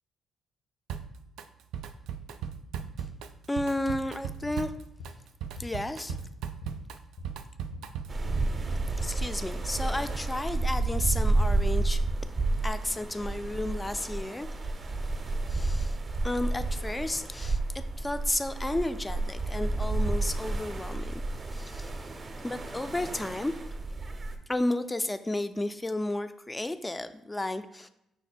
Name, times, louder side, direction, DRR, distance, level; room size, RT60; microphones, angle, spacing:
Drum kit, 0.9-1.5 1.7-8.3, right 7 dB, 85° right, 0.3 m, -38 dB
voice 1, 3.5-4.7 5.6-6.2 9.0-12.0 12.6-14.5 15.5-16.0 16.2-21.2 21.5-21.9 22.4-23.5 24.5-27.9, left 1 dB, 15° left, 11 dB, 0.3 m, -32 dB
sound 1, 3.9-7.9 8.2-9.0, left 2 dB, 80° left, 0.9 m, -46 dB
sound 2, 8.1-24.4, right 2 dB, 35° right, 0.6 m, -30 dB
5.8 x 2.1 x 4.2 m, 0.82 s
cardioid pair, 90°, 0 cm